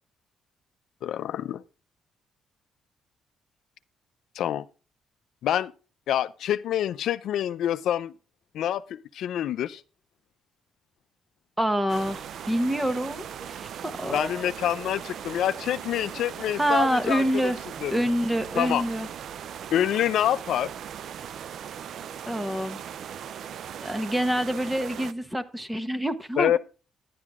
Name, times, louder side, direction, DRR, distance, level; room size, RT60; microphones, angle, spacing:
voice 1, 1.0-1.6 4.4-4.6 5.4-5.7 6.1-8.1 8.5-9.8 14.1-17.5 17.8-17.9 18.6-18.8 19.7-20.7 26.4-26.6, left 11 dB, 75° left, 0.4 m, -26 dB
voice 2, 11.6-14.4 16.6-17.6 17.9-19.1 22.2-22.8 23.8-26.6, right 1 dB, 10° right, 1.1 m, -27 dB
sound 1, 11.9-25.1, right 9 dB, 65° right, 0.4 m, -39 dB
11.0 x 9.4 x 3.6 m
cardioid pair, 90°, 0 cm